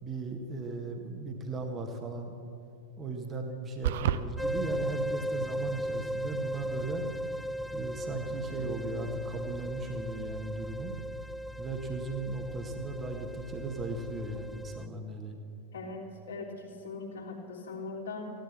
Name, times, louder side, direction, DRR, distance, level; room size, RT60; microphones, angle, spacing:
voice 1, 0.0-2.3 3.0-7.1 7.7-11.0 11.6-15.3, right 3 dB, 20° right, 3 dB, 1.7 m, -37 dB
sound 1, 3.8-4.2, right 11 dB, 55° right, 0.6 m, -27 dB
sound 2, 4.4-14.8, equal, ahead, 0.3 m, -37 dB
voice 2, 15.7-18.3, left 3 dB, 65° left, 0 dB, 3.1 m, -41 dB
16.5 x 12.0 x 7.3 m, 2.5 s
figure-of-eight pair, 90°, 0 cm